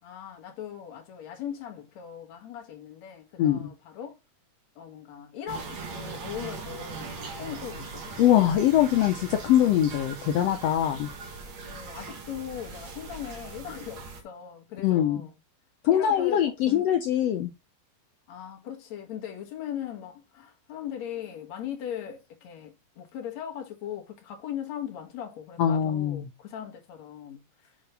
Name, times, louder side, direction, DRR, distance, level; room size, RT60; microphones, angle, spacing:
voice 1, 0.0-4.2 4.8-8.1 11.6-15.3 15.9-16.9 18.3-27.8, left 9 dB, 60° left, 2.6 m, -39 dB
voice 2, 3.4-3.7 8.2-11.1 14.8-15.2 15.8-17.5 25.6-26.2, left 11 dB, 75° left, 1.5 m, -23 dB
sound 1, 5.5-14.2, right 4 dB, 60° right, 2.8 m, -40 dB
7.9 x 3.4 x 5.7 m
omnidirectional pair, 3.8 m